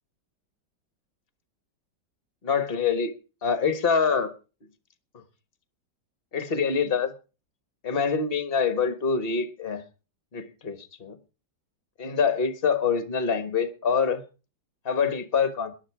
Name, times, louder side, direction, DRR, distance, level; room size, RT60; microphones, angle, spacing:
voice 1, 2.4-3.1 3.4-4.3 6.3-7.1 7.8-9.8 10.3-11.2 12.0-14.2 14.8-15.7, left 6 dB, 35° left, 1.5 m, -25 dB
18.5 x 11.0 x 4.8 m
omnidirectional pair, 1.9 m